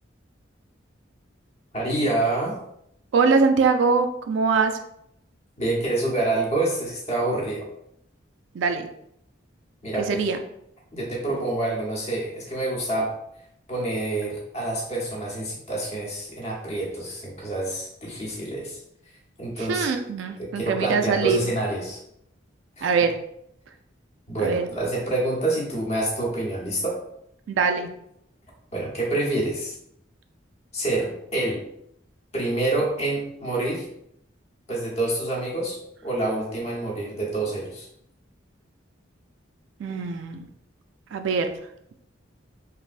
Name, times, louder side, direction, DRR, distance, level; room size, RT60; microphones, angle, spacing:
voice 1, 1.7-2.6 5.6-7.7 9.8-10.2 10.9-13.2 13.7-18.8 19.4-19.9 20.4-22.0 22.8-22.9 24.3-27.0 28.7-29.7 30.7-31.7 32.3-33.9 34.7-37.9, right 2 dB, 35° left, -3 dB, 0.8 m, -27 dB
voice 2, 3.1-4.7 8.5-8.9 9.9-10.4 19.6-21.4 22.8-23.1 24.4-24.7 27.5-27.9 39.8-40.5 41.1-41.5, right 5 dB, 75° right, 7 dB, 0.3 m, -22 dB
3.3 x 2.6 x 2.4 m, 0.75 s
head